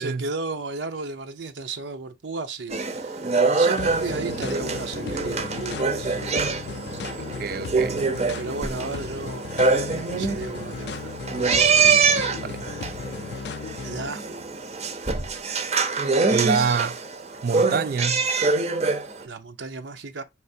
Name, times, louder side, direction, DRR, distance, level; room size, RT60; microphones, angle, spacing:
voice 1, 0.0-3.3 3.5-6.4 6.7-7.1 8.3-9.4 10.0-11.8 13.8-14.3 19.2-20.2, right 3 dB, 75° right, 0.7 m, -34 dB
sound 1, 2.7-19.2, right 4 dB, 35° right, 0.7 m, -25 dB
sound 2, 3.8-14.1, left 5 dB, 60° left, 0.3 m, -36 dB
voice 2, 7.2-8.0 12.4-12.7 16.3-17.0 17.4-18.3, right 6 dB, 50° right, 0.3 m, -26 dB
5.7 x 3.4 x 2.6 m
head